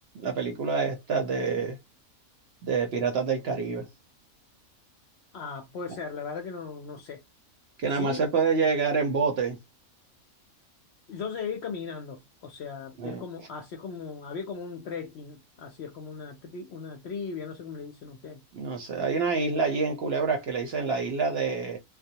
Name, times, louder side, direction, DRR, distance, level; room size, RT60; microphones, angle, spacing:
voice 1, 0.1-1.8 2.6-3.9 7.8-9.6 13.0-13.2 18.5-21.8, right 5 dB, 60° right, 0.7 m, -27 dB
voice 2, 5.3-7.2 7.9-8.3 11.1-18.4, left 5 dB, 65° left, 0.7 m, -38 dB
2.3 x 2.1 x 2.7 m
omnidirectional pair, 1.5 m